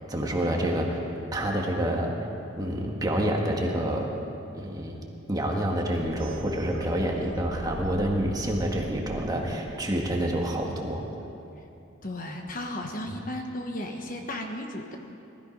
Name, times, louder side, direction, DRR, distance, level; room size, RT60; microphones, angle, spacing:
voice 1, 0.1-1.0 1.3-2.3 2.6-4.1 4.5-5.0 5.3-11.0, right 1 dB, 20° right, 0 dB, 1.6 m, -28 dB
sound 1, 6.0-10.9, right 1 dB, 65° right, 0.8 m, -40 dB
voice 2, 12.0-15.0, left 1 dB, 40° left, 3 dB, 1.2 m, -34 dB
19.5 x 14.0 x 5.3 m, 2.7 s
head